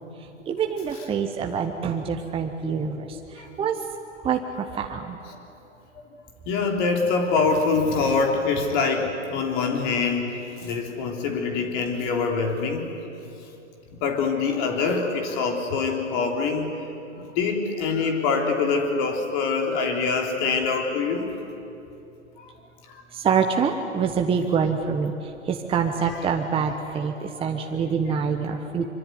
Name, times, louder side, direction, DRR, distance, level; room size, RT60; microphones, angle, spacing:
voice 1, 0.5-3.2 3.6-3.8 4.2-5.2 23.1-25.1 25.5-28.9, right 6 dB, 15° right, 3 dB, 1.3 m, -25 dB
voice 2, 2.6-3.5 6.5-12.9 14.0-16.9 17.2-21.3 22.4-22.5 22.9-23.0 26.0-26.2 27.3-27.5 28.8-28.9, left 4 dB, 40° left, 3 dB, 3.5 m, -25 dB
24.5 x 24.5 x 9.7 m, 2.8 s
figure-of-eight pair, 115°, 38 cm